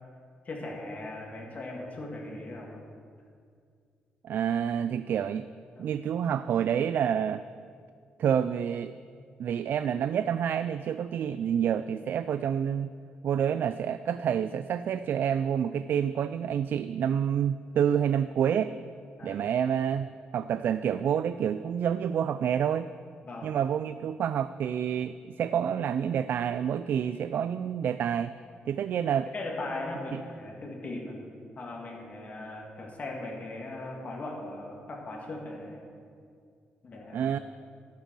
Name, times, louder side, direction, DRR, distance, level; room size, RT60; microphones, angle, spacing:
voice 1, 0.5-2.8 5.8-5.9 19.2-19.4 23.2-23.5 29.3-31.2 31.6-35.8 36.8-37.3, left 2 dB, 45° left, -1 dB, 2.3 m, -39 dB
voice 2, 4.2-5.5 5.8-7.5 8.2-8.9 9.4-12.9 13.2-18.8 19.2-20.1 20.3-22.9 23.4-28.3 28.6-29.3 30.1-30.2 37.1-37.4, right 8 dB, 65° right, 13 dB, 0.3 m, -28 dB
10.5 x 9.6 x 6.2 m, 2.2 s
cardioid pair, 105°, 4 cm